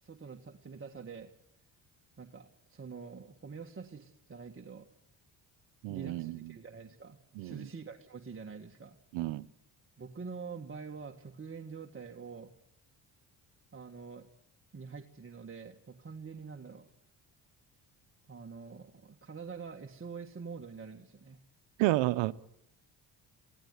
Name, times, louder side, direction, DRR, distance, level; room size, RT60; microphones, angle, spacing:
voice 1, 0.0-1.3 2.2-4.9 5.9-9.0 10.0-12.5 13.7-14.3 14.7-16.9 18.3-21.4, right 5 dB, 30° right, 1.7 m, -46 dB
voice 2, 5.8-6.5 7.4-7.7 9.1-9.5 21.8-22.3, right 17 dB, 85° right, 0.9 m, -31 dB
23.0 x 16.5 x 9.6 m
cardioid pair, 80°, 44 cm